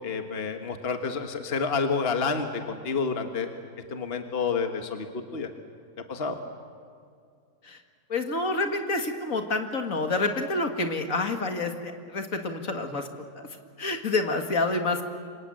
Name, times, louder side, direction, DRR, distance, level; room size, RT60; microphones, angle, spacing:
voice 1, 0.0-3.5 3.9-5.5 6.1-6.4, left 5 dB, 40° left, 6 dB, 1.6 m, -29 dB
voice 2, 8.1-13.1 13.3-13.5 13.8-15.0, left 3 dB, 60° left, 5 dB, 2.3 m, -28 dB
28.0 x 25.5 x 7.7 m, 2.3 s
omnidirectional pair, 1.6 m